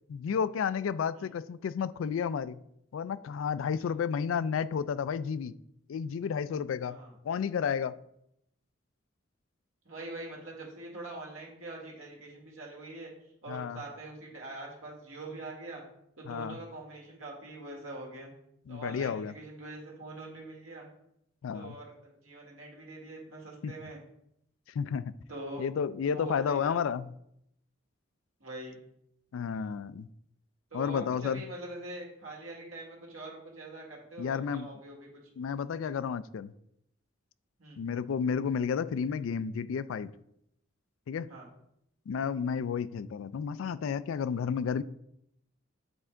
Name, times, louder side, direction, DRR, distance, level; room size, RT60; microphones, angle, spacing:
voice 1, 0.1-2.6 2.9-5.5 5.9-7.0 7.2-8.0 13.5-13.8 16.3-16.6 18.7-19.3 21.4-21.8 23.6-23.7 24.7-25.1 25.6-27.1 29.3-30.1 30.7-31.4 34.2-34.7 35.4-36.5 37.8-40.1 41.1-41.3 42.1-44.8, left 7 dB, 80° left, 15 dB, 0.3 m, -31 dB
voice 2, 3.8-4.1 6.9-7.1 9.9-13.1 13.4-15.8 16.2-18.3 18.7-20.9 21.5-24.0 25.3-25.6 26.0-26.8 28.4-28.8 30.7-35.1 35.4-35.5 37.6-37.8 41.3-41.5, right 2 dB, 85° right, -1 dB, 1.9 m, -44 dB
8.0 x 3.6 x 4.4 m, 0.77 s
head